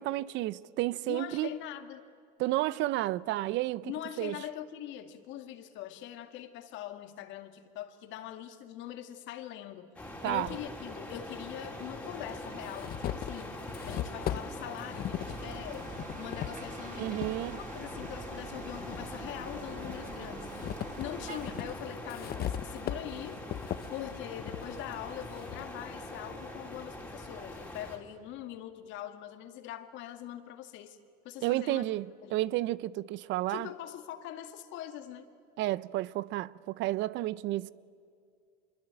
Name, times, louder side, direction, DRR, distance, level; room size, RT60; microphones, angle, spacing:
voice 1, 0.0-1.5 2.4-3.9 4.2-4.4 10.2-10.5 17.0-17.6 31.4-33.7 35.6-37.7, right 16 dB, 60° right, 0.7 m, -31 dB
voice 2, 1.1-2.0 3.8-9.9 10.2-20.5 21.0-23.4 23.9-31.0 31.2-31.8 32.2-32.4 33.5-35.3, left 11 dB, 65° left, 2.3 m, -42 dB
sound 1, 10.0-28.0, left 1 dB, 5° left, 4.3 m, -43 dB
sound 2, 10.5-10.6 11.6-11.7 12.2-17.4 17.9-19.1 19.5-25.7, left 11 dB, 45° left, 1.0 m, -39 dB
sound 3, 15.2-21.8, right 7 dB, 40° right, 2.0 m, -47 dB
26.0 x 23.0 x 9.0 m
supercardioid pair, 115°, 21 cm